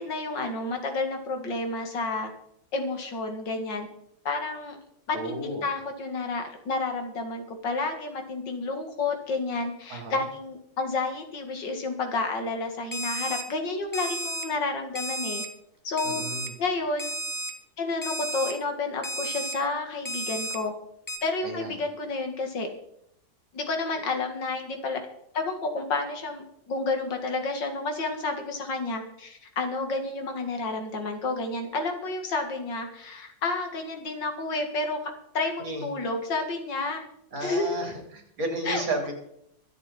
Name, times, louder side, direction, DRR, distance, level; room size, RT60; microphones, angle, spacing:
voice 1, 0.0-2.3 2.7-3.9 4.2-4.8 5.1-15.4 15.8-16.2 16.6-17.2 17.8-20.7 21.2-22.7 23.5-25.0 25.3-35.0 35.3-37.0 37.4-37.8 38.7-38.8, left 3 dB, 60° left, 5 dB, 2.6 m, -30 dB
voice 2, 5.1-5.6 9.9-10.2 16.0-16.5 21.4-21.7 35.6-35.9 37.3-39.1, right 2 dB, 70° right, 2 dB, 4.1 m, -33 dB
Alarm, 12.9-13.4 13.9-14.4 15.0-15.5 16.0-16.5 17.0-17.5 18.0-18.5 19.0-19.5 20.1-20.6 21.1-21.2, right 1 dB, 10° left, 1.2 m, -32 dB
24.0 x 8.0 x 4.3 m, 0.74 s
omnidirectional pair, 2.2 m